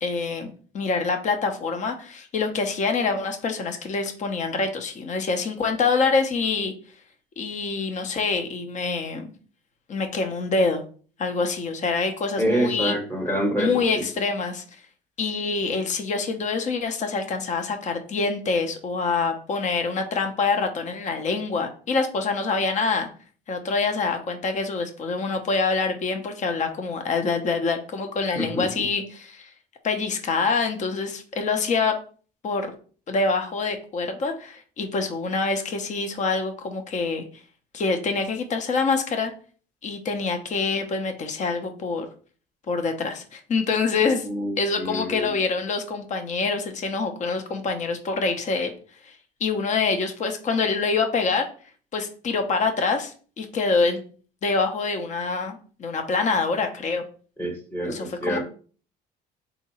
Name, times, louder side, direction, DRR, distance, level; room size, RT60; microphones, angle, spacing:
voice 1, 0.0-6.7 7.4-9.3 9.9-10.8 11.2-12.9 13.6-14.6 15.2-23.1 23.5-29.5 29.8-32.0 32.4-32.7 33.1-37.2 37.7-39.3 39.8-42.1 42.7-44.3 44.6-48.7 49.0-51.5 51.9-54.0 54.4-57.0 57.8-58.4, left 4 dB, 45° left, 5 dB, 0.8 m, -25 dB
voice 2, 12.4-14.0 28.3-28.8 44.2-45.3 57.4-58.4, right 1 dB, 10° left, 1 dB, 1.0 m, -27 dB
3.7 x 2.8 x 4.3 m, 0.41 s
cardioid pair, 110°, 17 cm